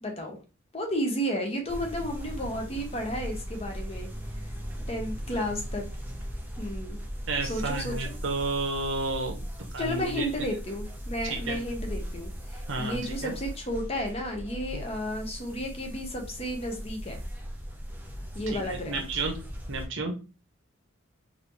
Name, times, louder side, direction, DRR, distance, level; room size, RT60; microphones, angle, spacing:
voice 1, 0.0-0.4 0.7-4.4 4.9-5.8 6.6-7.0 7.5-8.1 9.8-17.2 18.3-19.0, equal, 30° left, 3 dB, 0.8 m, -33 dB
sound 1, 1.7-19.9, equal, 10° right, 0.5 m, -38 dB
voice 2, 7.3-9.5 9.7-10.3 11.2-11.6 12.7-13.4 14.7-14.8 18.7-19.4 19.7-20.1, right 3 dB, 65° right, 2 dB, 0.9 m, -31 dB
4.1 x 2.7 x 2.9 m, 0.32 s
head